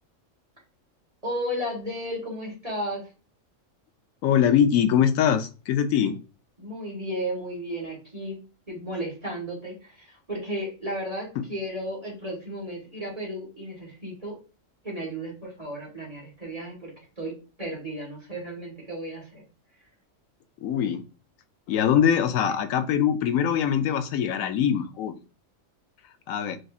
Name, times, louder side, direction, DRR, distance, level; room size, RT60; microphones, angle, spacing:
voice 1, 1.2-3.1 6.0-6.1 6.6-8.4 8.7-14.4 14.8-17.3 17.6-19.4, equal, 30° right, 1.6 m, -34 dB
voice 2, 4.2-6.2 20.6-21.0 21.7-25.1 26.3-26.6, left 8 dB, 85° left, 1.0 m, -22 dB
6.3 x 2.7 x 2.4 m
omnidirectional pair, 1.4 m